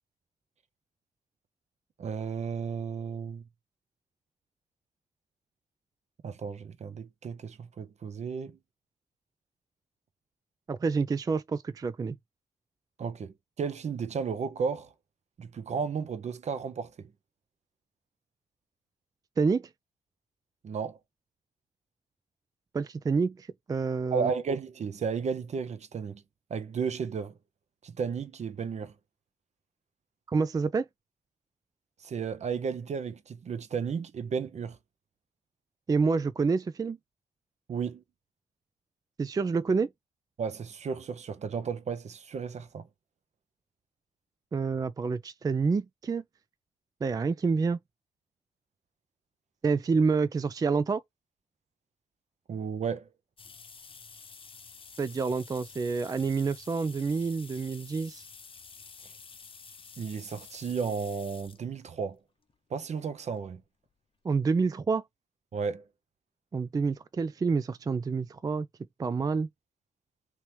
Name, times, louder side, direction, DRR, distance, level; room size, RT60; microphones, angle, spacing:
voice 1, 2.0-3.4 6.2-8.6 13.0-14.9 15.4-17.1 20.6-21.0 24.1-26.2 26.5-27.3 27.8-28.9 32.0-34.8 37.7-38.0 40.4-42.9 52.5-53.1 59.0-59.1 60.0-62.2 62.7-63.6 65.5-65.9, right 6 dB, 50° right, 0.7 m, -33 dB
voice 2, 10.7-12.2 19.4-19.7 22.7-24.3 30.3-30.9 35.9-37.0 39.2-39.9 44.5-46.2 47.0-47.8 49.6-51.0 55.0-58.2 64.2-65.0 66.5-68.7 69.0-69.5, right 4 dB, 25° right, 0.3 m, -28 dB
sound 1, 53.4-61.6 62.5-62.6 63.9-64.0 64.3-64.4 64.7-64.8, left 5 dB, 40° left, 0.8 m, -50 dB
2.9 x 2.9 x 3.2 m
supercardioid pair, 55°, 15 cm